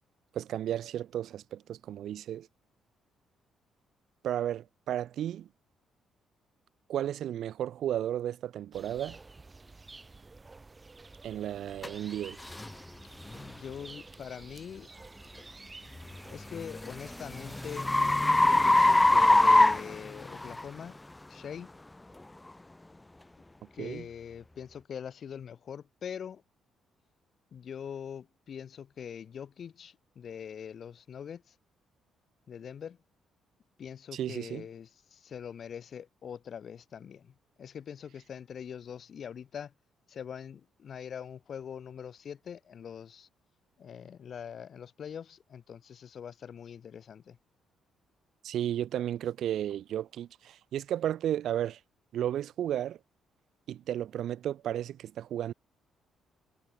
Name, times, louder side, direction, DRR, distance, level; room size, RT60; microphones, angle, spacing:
voice 1, 0.3-2.5 4.2-5.5 6.9-9.2 11.2-12.4 23.8-24.1 34.1-34.6 48.4-51.8 52.1-53.0 53.7-55.5, right 11 dB, 75° right, 3.1 m, -33 dB
sound 1, 8.7-18.2, right 3 dB, 25° right, 4.6 m, -51 dB
sound 2, 11.8-11.9 12.5-12.7 13.3-13.5 16.1-20.6, left 2 dB, 15° left, 0.3 m, -23 dB
voice 2, 13.3-14.9 15.3-15.5 16.3-17.9 18.4-21.0 21.3-21.7 23.7-26.4 27.5-31.6 32.5-33.0 33.8-39.7 40.1-43.3 43.8-47.4, left 8 dB, 55° left, 5.4 m, -43 dB
cardioid pair, 90°, 0 cm